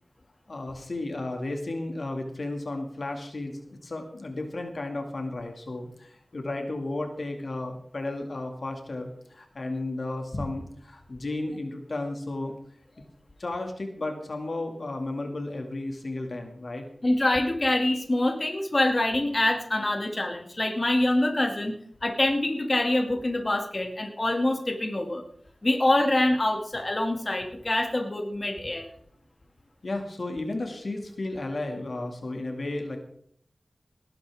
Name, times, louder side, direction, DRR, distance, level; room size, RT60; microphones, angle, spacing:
voice 1, 0.5-12.5 13.4-16.8 29.8-33.0, left 2 dB, 65° left, 4 dB, 2.1 m, -33 dB
voice 2, 17.0-21.8 22.0-25.2 25.6-28.9, left 1 dB, 40° left, 3 dB, 2.2 m, -25 dB
19.0 x 11.5 x 3.5 m, 0.66 s
wide cardioid pair, 70°, 0 cm